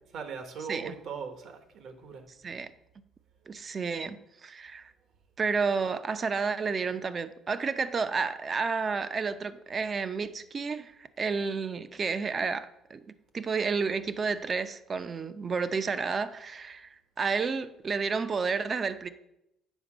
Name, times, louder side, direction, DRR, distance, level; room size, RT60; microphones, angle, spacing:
voice 1, 0.1-2.2, right 5 dB, 65° right, 1.2 m, -39 dB
voice 2, 3.5-4.9 5.4-10.9 11.2-19.1, right 5 dB, 35° right, 0.5 m, -31 dB
8.1 x 5.1 x 5.0 m
cardioid pair, 95°, 0 cm